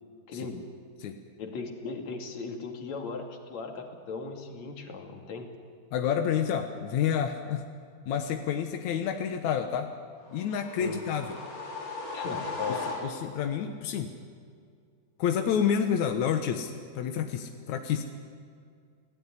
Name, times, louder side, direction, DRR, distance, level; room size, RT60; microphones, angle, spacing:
voice 1, 0.3-0.7 1.4-5.5 10.8-11.0 12.1-12.8, left 4 dB, 50° left, 3 dB, 3.3 m, -37 dB
voice 2, 5.9-7.7 8.1-9.9 10.3-11.4 12.7-14.1 15.2-18.0, left 8 dB, 65° left, 5 dB, 1.9 m, -29 dB
sound 1, 10.3-13.5, left 3 dB, 90° left, 7.4 m, -37 dB
28.5 x 17.5 x 9.9 m, 2.2 s
omnidirectional pair, 4.7 m